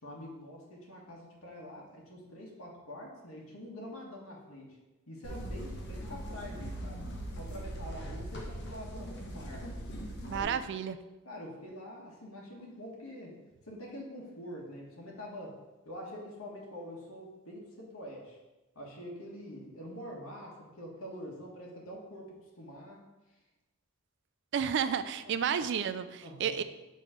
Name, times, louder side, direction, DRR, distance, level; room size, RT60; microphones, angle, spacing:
voice 1, 0.0-4.8 5.1-7.0 7.4-9.7 10.3-10.5 11.2-13.4 13.6-15.6 15.8-18.4 18.7-23.0 26.2-26.6, equal, 90° left, -2 dB, 1.5 m, -45 dB
sound 1, 5.2-10.4, equal, 55° left, 0.9 m, -40 dB
voice 2, 10.3-11.0 24.5-26.6, right 7 dB, 55° right, 12 dB, 0.3 m, -31 dB
6.9 x 3.2 x 5.0 m, 1.1 s
head